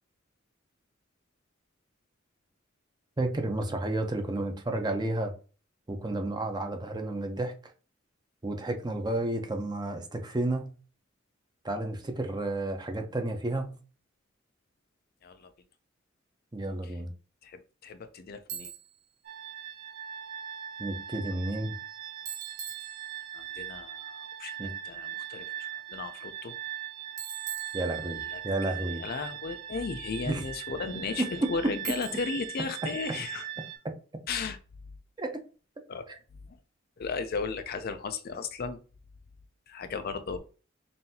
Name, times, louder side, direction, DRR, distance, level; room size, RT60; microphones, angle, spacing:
voice 1, 3.2-5.3 5.9-7.5 8.4-10.8 11.6-13.8 16.5-17.1 20.8-21.8 24.6-24.7 27.7-29.0 30.2-30.5 31.2-31.5 35.2-35.3 36.1-36.2, right 2 dB, 20° right, 0.7 m, -31 dB
voice 2, 17.4-18.7 23.3-24.6 24.9-26.5 28.3-28.4 28.7-33.4 34.3-34.6 35.9-36.2 37.0-38.8 39.7-40.4, left 4 dB, 50° left, 0.4 m, -35 dB
Bicycle, 18.5-19.0 22.3-23.5 27.2-28.4 31.8-32.5, right 9 dB, 80° right, 1.0 m, -41 dB
sound 1, 19.2-33.8, right 11 dB, 60° right, 1.3 m, -40 dB
5.5 x 2.6 x 2.8 m
head